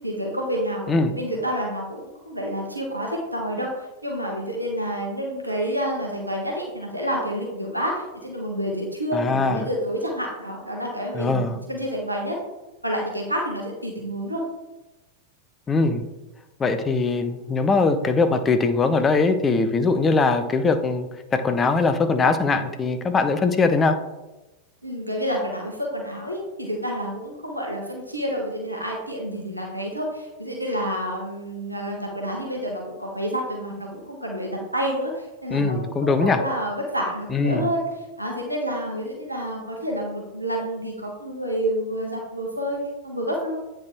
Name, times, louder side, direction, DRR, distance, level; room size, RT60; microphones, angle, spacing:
voice 1, 0.0-12.4 12.8-14.4 24.8-37.8 38.2-43.6, equal, 85° right, 0 dB, 1.1 m, -29 dB
voice 2, 9.1-9.7 11.1-11.6 15.7-16.0 16.6-24.0 35.5-36.4 37.3-37.7, left 3 dB, 20° left, 8 dB, 0.7 m, -21 dB
8.5 x 4.6 x 3.3 m, 1.0 s
figure-of-eight pair, 90°, 0 cm